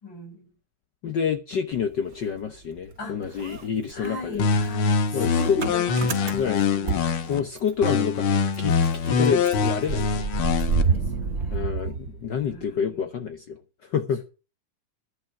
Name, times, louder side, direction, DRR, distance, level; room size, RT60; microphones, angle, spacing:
voice 1, 0.0-0.5 3.0-3.5 3.9-7.2 10.6-11.8 12.4-13.1, left 2 dB, 35° left, 6.6 m, -37 dB
voice 2, 1.0-4.5 5.1-5.6 6.3-6.6 7.3-10.3 11.5-14.2, left 7 dB, 90° left, 0.9 m, -28 dB
Motor vehicle (road) / Engine starting, 1.7-2.9 3.2-7.9 8.2-8.3 8.5-12.7, right 5 dB, 50° right, 0.9 m, -30 dB
sound 1, 4.4-7.4 7.8-10.8, left 5 dB, 55° left, 1.7 m, -24 dB
11.5 x 11.0 x 5.8 m
omnidirectional pair, 3.5 m